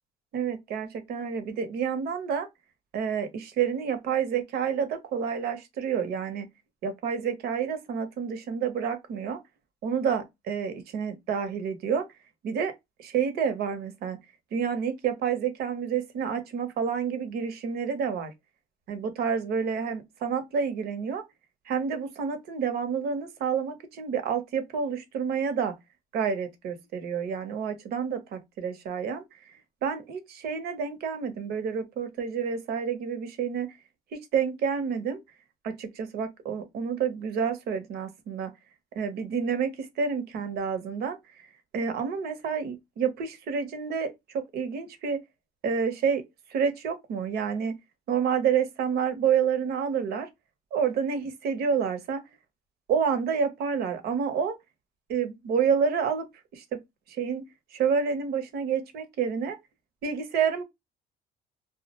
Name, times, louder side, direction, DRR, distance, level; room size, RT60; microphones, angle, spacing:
voice 1, 0.3-2.5 2.9-6.5 6.8-9.4 9.8-12.0 12.4-12.7 13.0-14.2 14.5-18.3 18.9-21.2 21.7-25.7 26.1-29.2 29.8-33.7 34.1-35.2 35.6-38.5 39.0-41.2 41.7-45.2 45.6-46.2 46.5-47.7 48.1-50.3 50.7-52.2 52.9-54.6 55.1-56.3 56.5-56.6 57.2-57.4 57.7-59.6 60.0-60.6, right 6 dB, 70° right, 0.7 m, -29 dB
2.3 x 2.1 x 2.8 m
cardioid pair, 110°, 17 cm